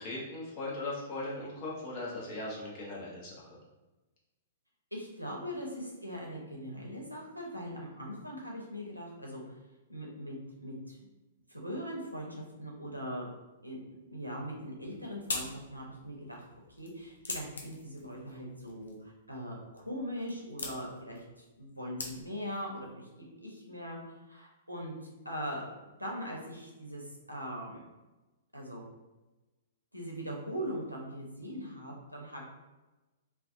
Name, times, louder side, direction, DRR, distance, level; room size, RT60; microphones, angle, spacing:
voice 1, 0.0-3.5, left 2 dB, 35° left, -4 dB, 0.8 m, -39 dB
voice 2, 4.9-9.5 9.9-10.4 10.6-11.0 11.5-13.3 13.6-13.8 14.1-16.4 16.8-25.7 26.0-27.8 28.5-28.9 29.9-32.5, equal, 90° right, -2 dB, 0.6 m, -41 dB
sound 1, 14.6-22.6, left 3 dB, 70° left, 0.4 m, -44 dB
2.5 x 2.2 x 2.6 m, 1.1 s
figure-of-eight pair, 110°, 0 cm